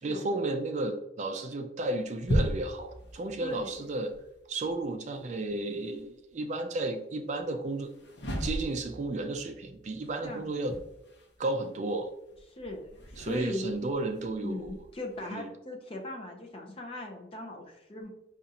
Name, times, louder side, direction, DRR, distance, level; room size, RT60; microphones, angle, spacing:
voice 1, 0.0-4.1 4.5-7.9 8.4-10.8 11.4-12.1 13.2-14.7 15.3-15.5, right 2 dB, 40° right, 6 dB, 0.3 m, -33 dB
sound 1, 1.8-6.1 7.7-15.2, equal, 75° left, 0.8 m, -38 dB
voice 2, 3.4-3.7 10.2-10.4 12.5-13.7 14.4-18.1, left 1 dB, 30° left, 2 dB, 0.6 m, -39 dB
5.1 x 2.4 x 2.8 m, 0.88 s
head